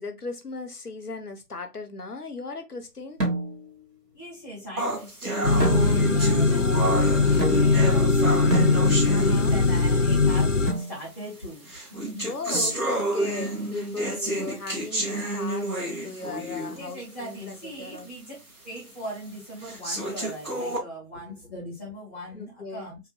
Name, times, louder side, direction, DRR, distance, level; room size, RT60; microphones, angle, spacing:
voice 1, 0.0-3.2 5.9-6.0 9.0-9.6 12.2-18.1 22.3-22.9, left 4 dB, 70° left, 1.0 m, -37 dB
sound 1, 3.2-3.8 5.6-6.3 7.4-8.0 8.5-9.3 10.7-11.0 12.5-13.2, right 2 dB, 85° right, 1.8 m, -30 dB
voice 2, 4.1-8.6 9.2-12.3 16.7-18.3 18.6-23.0, equal, 20° left, 2.0 m, -40 dB
sound 2, 4.8-9.9 10.8-10.9 11.7-16.9 17.3-17.4 18.0-18.1 18.8-18.9 19.6-20.8, right 1 dB, 65° right, 2.0 m, -30 dB
sound 3, 5.4-10.7, left 3 dB, 55° left, 0.5 m, -20 dB
4.4 x 3.0 x 2.3 m
figure-of-eight pair, 170°, 48 cm